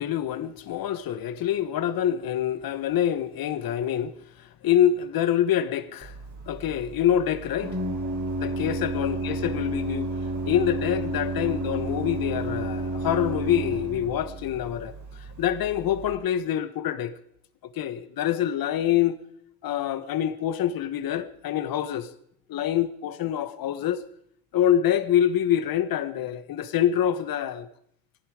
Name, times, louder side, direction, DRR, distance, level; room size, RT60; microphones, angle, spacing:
voice 1, 0.0-6.1 6.5-7.7 8.4-10.1 10.4-14.9 15.4-17.1 17.6-19.2 19.6-22.1 22.5-24.0 24.5-27.7, left 10 dB, 60° left, 1.5 m, -26 dB
Organ, 6.0-16.2, right 2 dB, 45° right, 3.8 m, -32 dB
18.5 x 15.0 x 5.0 m
supercardioid pair, 80°, 40 cm